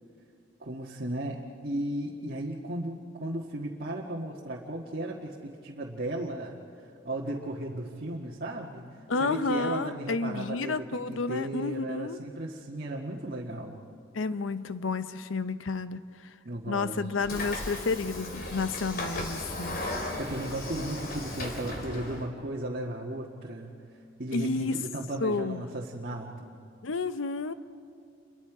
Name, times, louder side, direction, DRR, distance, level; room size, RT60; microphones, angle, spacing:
voice 1, 0.6-6.6 7.0-8.9 9.2-13.8 16.4-17.0 19.7-23.7 24.2-26.5, right 1 dB, 50° right, -2 dB, 1.6 m, -35 dB
voice 2, 9.1-12.2 14.1-16.0 16.7-19.8 24.3-24.8 25.2-25.6 26.8-27.5, left 3 dB, 85° left, 13 dB, 0.8 m, -31 dB
Train / Sliding door, 17.2-22.3, left 1 dB, 50° left, 3.0 m, -36 dB
29.0 x 23.0 x 4.9 m, 2.4 s
head